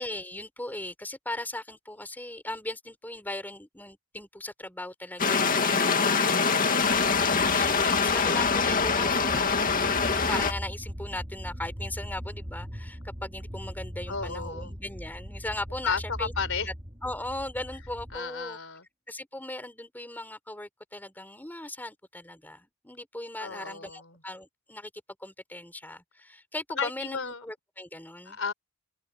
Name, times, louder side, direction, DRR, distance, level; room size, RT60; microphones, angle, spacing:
voice 1, 0.0-6.7 7.3-16.3 17.0-18.6 19.1-24.9 25.2-28.4, left 1 dB, 10° left, 3.8 m, -38 dB
sound 1, 5.2-10.5, left 5 dB, 40° left, 2.1 m, -24 dB
voice 2, 6.2-7.4 14.1-14.7 15.8-16.7 18.1-18.8 23.4-24.2 26.8-27.4 28.3-28.5, left 5 dB, 65° left, 4.3 m, -34 dB
sound 2, 6.8-18.2, equal, 20° right, 3.0 m, -40 dB
head